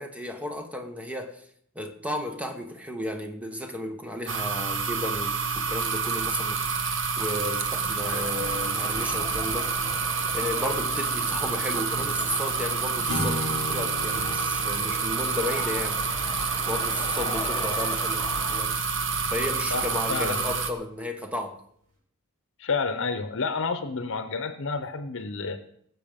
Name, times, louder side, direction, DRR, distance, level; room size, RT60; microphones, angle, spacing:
voice 1, 0.0-1.4 1.7-9.8 10.3-16.0 16.7-18.2 18.5-18.8 19.3-21.6, left 1 dB, 5° right, 5 dB, 1.3 m, -33 dB
sound 1, 4.3-20.7, right 5 dB, 60° right, 1.3 m, -28 dB
sound 2, 8.0-18.6, left 3 dB, 20° left, 1.2 m, -41 dB
sound 3, 13.1-17.5, left 1 dB, 80° right, 6.2 m, -36 dB
voice 2, 19.7-20.4 22.6-25.6, left 4 dB, 65° left, 10 dB, 0.9 m, -30 dB
19.0 x 7.8 x 5.2 m, 0.66 s
head